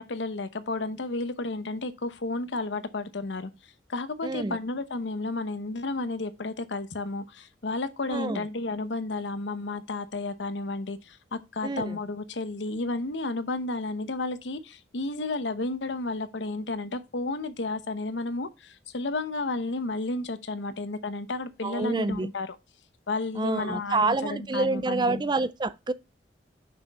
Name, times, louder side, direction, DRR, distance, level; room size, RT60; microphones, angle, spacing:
voice 1, 0.0-22.6 23.1-25.2, left 2 dB, 80° left, 0.9 m, -32 dB
voice 2, 4.2-4.6 8.1-8.4 11.6-12.0 21.6-22.3 23.4-25.9, right 3 dB, 25° right, 0.4 m, -27 dB
6.2 x 5.9 x 4.1 m
head